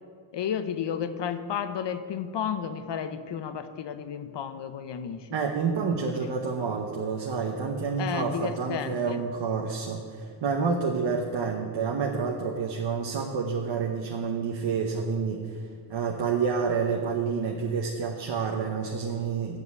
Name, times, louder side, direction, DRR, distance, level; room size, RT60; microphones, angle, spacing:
voice 1, 0.3-5.3 6.2-6.3 8.0-9.2, left 8 dB, 60° left, 11 dB, 0.8 m, -32 dB
voice 2, 5.3-15.6 15.9-19.6, right 5 dB, 65° right, 2 dB, 1.0 m, -29 dB
8.2 x 7.3 x 8.3 m, 2.1 s
cardioid pair, 85°, 48 cm